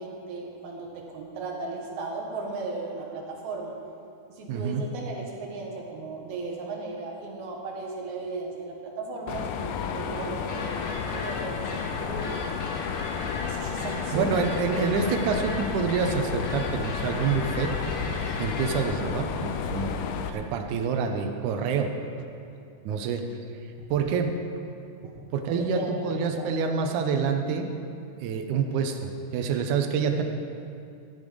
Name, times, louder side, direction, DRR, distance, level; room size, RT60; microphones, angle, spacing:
voice 1, 0.0-3.7 4.4-12.3 13.5-14.4 23.8-23.9 25.0-25.2 25.6-26.5, right 3 dB, 60° right, -1 dB, 2.6 m, -36 dB
voice 2, 4.5-4.8 14.1-17.7 18.4-20.0 20.3-21.9 22.9-23.2 23.9-24.3 25.3-27.7 28.2-30.2, right 5 dB, 75° right, 5 dB, 1.8 m, -27 dB
Mechanisms, 9.3-20.3, left 7 dB, 85° left, 1.9 m, -32 dB
sound 1, 10.5-18.8, left 2 dB, 60° left, 1.4 m, -38 dB
14.5 x 8.2 x 5.2 m, 2.5 s
omnidirectional pair, 4.4 m